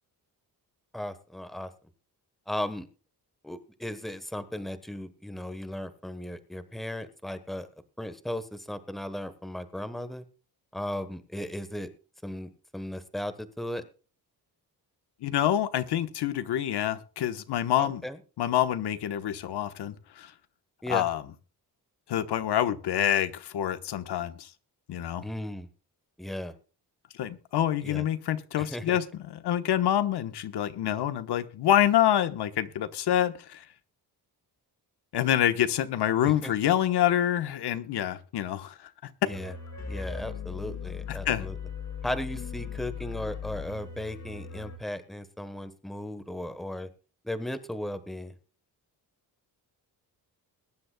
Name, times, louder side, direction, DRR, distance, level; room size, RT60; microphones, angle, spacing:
voice 1, 0.9-1.7 2.5-2.9 3.4-7.7 8.0-10.2 10.7-11.9 12.2-13.8 17.8-18.2 20.8-21.1 25.2-25.7 26.2-26.5 27.8-28.0 28.6-29.0 36.3-36.7 39.2-39.5 39.9-41.6 42.0-46.9 47.2-48.3, left 1 dB, ahead, 1.1 m, -36 dB
voice 2, 15.2-18.0 18.4-20.3 20.9-21.2 22.1-24.5 24.9-25.2 27.2-33.6 35.1-38.8 41.1-41.5, left 11 dB, 80° left, 1.2 m, -27 dB
sound 1, 39.3-44.8, left 7 dB, 45° left, 3.0 m, -38 dB
21.5 x 11.0 x 2.3 m
wide cardioid pair, 160°, 39 cm